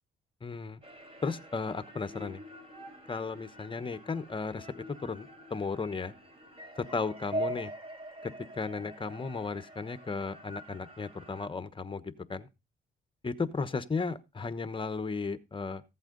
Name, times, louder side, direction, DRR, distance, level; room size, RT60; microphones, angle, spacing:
voice 1, 0.4-0.8 1.2-2.4 3.1-6.1 6.9-7.7 8.2-12.5 13.2-15.8, left 4 dB, 25° left, 1.2 m, -35 dB
sound 1, 0.8-11.5, right 1 dB, 30° right, 4.0 m, -43 dB
15.0 x 8.2 x 3.9 m
cardioid pair, 90°, 20 cm